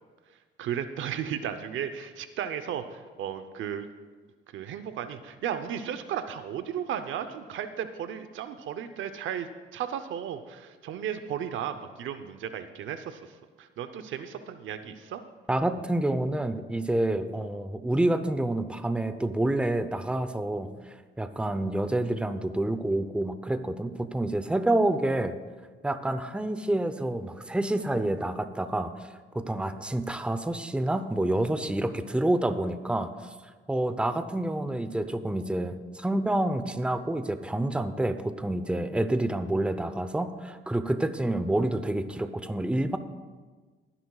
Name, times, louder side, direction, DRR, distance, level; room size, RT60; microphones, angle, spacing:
voice 1, 0.6-3.9 4.5-15.2, right 9 dB, 75° right, 10 dB, 0.8 m, -35 dB
voice 2, 15.5-20.7 21.2-25.4 25.8-29.1 29.3-33.3 33.7-43.0, right 1 dB, 5° right, 10 dB, 0.7 m, -28 dB
21.5 x 9.9 x 2.4 m, 1.4 s
cardioid pair, 90°, 20 cm